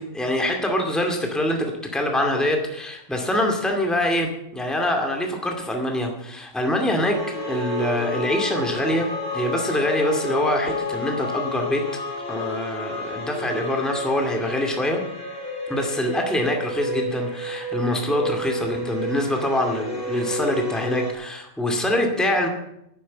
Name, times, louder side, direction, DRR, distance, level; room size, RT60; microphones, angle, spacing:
voice 1, 0.0-9.1 9.3-11.9 12.3-15.0 15.7-22.5, left 1 dB, ahead, 3 dB, 2.3 m, -24 dB
sound 1, 7.1-21.1, left 1 dB, 90° left, 4.4 m, -31 dB
11.5 x 10.0 x 8.5 m, 0.81 s
omnidirectional pair, 1.5 m